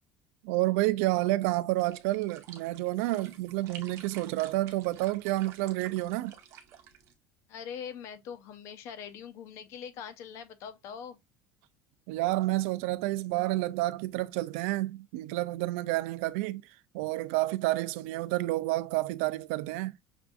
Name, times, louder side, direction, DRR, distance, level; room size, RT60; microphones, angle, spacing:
voice 1, 0.4-6.3 12.1-16.6 16.9-19.9, right 18 dB, 80° right, 0.4 m, -29 dB
sound 1, 1.8-7.1, right 8 dB, 45° right, 0.6 m, -51 dB
voice 2, 7.5-11.2, left 7 dB, 45° left, 0.6 m, -42 dB
5.9 x 2.6 x 2.3 m
cardioid pair, 180°, 7 cm